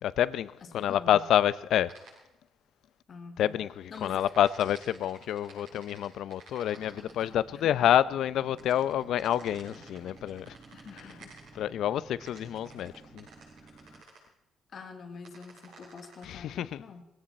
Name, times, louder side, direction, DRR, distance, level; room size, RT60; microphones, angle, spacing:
voice 1, 0.0-2.0 3.4-10.6 10.9-11.1 11.5-13.3 16.2-16.8, left 11 dB, 75° left, 0.5 m, -28 dB
voice 2, 0.6-1.3 3.1-3.6 3.9-4.3 7.5-7.9 10.7-11.4 14.7-17.0, left 4 dB, 50° left, 2.1 m, -46 dB
sound 1, 1.9-2.1 3.9-7.3 8.6-11.5 12.2-14.2 15.2-16.2, right 4 dB, 90° right, 6.6 m, -52 dB
sound 2, 6.7-14.0, right 4 dB, 35° right, 1.0 m, -54 dB
20.0 x 17.0 x 4.3 m
cardioid pair, 110°, 0 cm